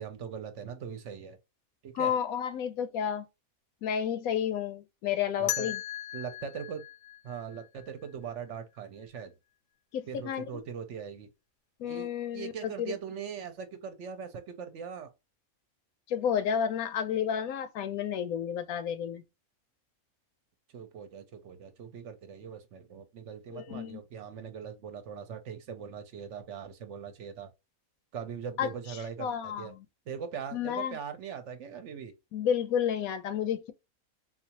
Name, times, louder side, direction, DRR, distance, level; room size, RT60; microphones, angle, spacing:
voice 1, 0.0-1.4 1.8-2.1 5.4-5.7 6.1-6.8 7.2-9.3 10.1-11.3 11.8-15.1 20.7-27.5 28.1-29.7 30.1-32.1, right 7 dB, 65° right, 0.9 m, -41 dB
voice 2, 1.9-3.3 3.8-5.8 9.9-10.6 11.8-12.9 16.1-19.2 23.5-24.0 28.6-28.7 29.2-29.8 30.5-31.0 32.3-33.7, left 8 dB, 80° left, 1.1 m, -31 dB
sound 1, 5.5-8.3, left 12 dB, 60° left, 0.8 m, -38 dB
4.0 x 2.3 x 2.8 m
omnidirectional pair, 1.5 m